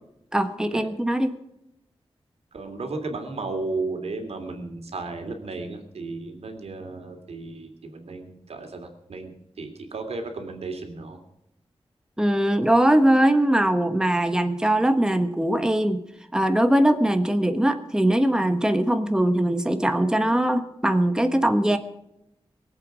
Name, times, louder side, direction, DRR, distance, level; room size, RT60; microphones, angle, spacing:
voice 1, 0.3-1.3 12.2-16.0 16.3-21.8, right 1 dB, 5° right, 8 dB, 1.1 m, -21 dB
voice 2, 2.5-11.2, right 3 dB, 85° right, 5 dB, 2.9 m, -34 dB
22.5 x 8.2 x 6.2 m, 0.84 s
wide cardioid pair, 110°, 10 cm